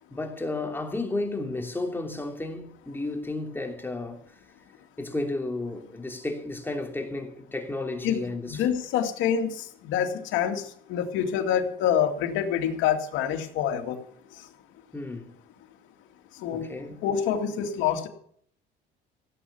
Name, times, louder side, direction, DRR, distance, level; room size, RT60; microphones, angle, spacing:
voice 1, 0.1-4.2 5.0-8.6 14.9-15.3 16.5-17.0, left 2 dB, 10° left, 2.9 m, -32 dB
voice 2, 8.5-10.6 10.9-14.0 16.4-16.7 17.0-18.1, left 9 dB, 80° left, 2.5 m, -26 dB
16.5 x 8.4 x 7.1 m
cardioid pair, 105°, 19 cm